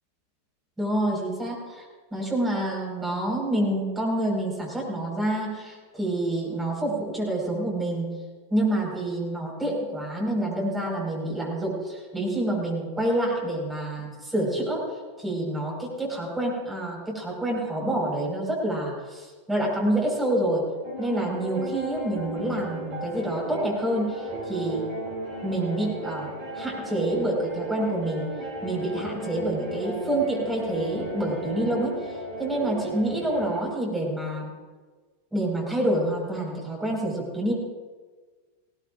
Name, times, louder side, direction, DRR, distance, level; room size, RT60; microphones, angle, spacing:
voice 1, 0.8-1.8 2.1-8.1 8.5-14.9 15.2-20.7 21.0-24.9 25.4-28.3 28.6-32.0 32.4-34.5 35.3-37.6, right 1 dB, 10° right, -3 dB, 5.1 m, -27 dB
sound 1, 20.8-33.6, right 2 dB, 40° right, 4.7 m, -35 dB
19.0 x 18.0 x 2.6 m, 1.4 s
figure-of-eight pair, 90°, 0 cm